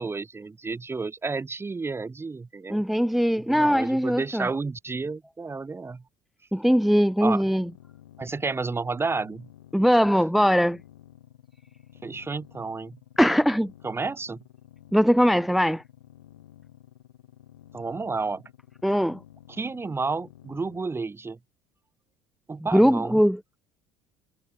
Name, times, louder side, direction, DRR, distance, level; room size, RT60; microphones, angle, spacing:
voice 1, 0.0-2.8 3.5-6.0 7.2-7.4 8.2-9.5 12.0-13.0 13.8-14.4 17.7-18.4 19.5-21.4 22.5-23.2, right 4 dB, 20° right, 2.8 m, -31 dB
voice 2, 2.7-4.5 6.5-7.7 9.7-10.8 13.2-13.7 14.9-15.8 18.8-19.2 22.7-23.4, equal, ahead, 0.7 m, -21 dB
sound 1, 7.5-20.9, left 12 dB, 80° left, 5.1 m, -52 dB
hypercardioid pair, 65°, 12 cm